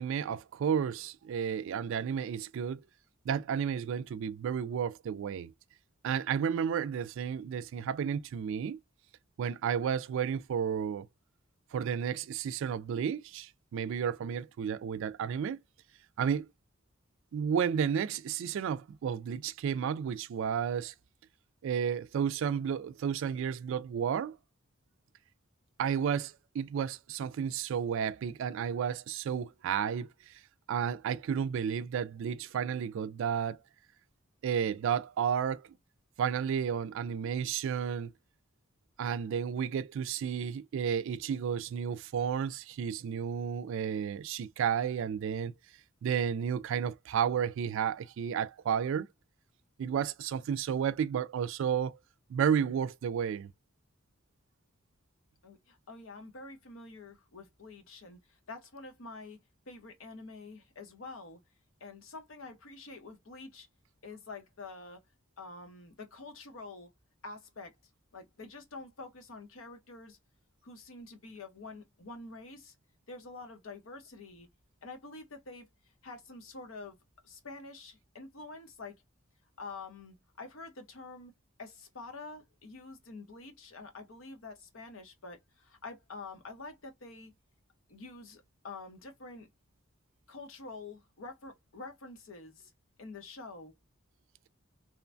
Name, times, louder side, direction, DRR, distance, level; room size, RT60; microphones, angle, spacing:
voice 1, 0.0-2.8 3.3-5.5 6.0-8.8 9.4-11.1 11.7-15.6 16.2-16.5 17.3-20.9 21.6-24.4 25.8-30.1 30.7-33.6 34.4-35.6 36.2-38.1 39.0-45.5 46.0-49.1 49.8-52.0 52.3-53.5, right 7 dB, 65° right, 0.3 m, -32 dB
voice 2, 55.4-59.4 59.7-61.4 61.8-63.7 64.0-65.0 65.4-66.9 67.2-67.8 68.1-70.2 70.6-72.7 73.1-74.5 74.8-75.7 76.0-77.0 77.2-79.0 79.6-81.3 81.6-87.3 87.9-89.5 90.3-92.7 93.0-93.7, left 3 dB, 70° left, 0.9 m, -47 dB
3.0 x 2.1 x 2.5 m
head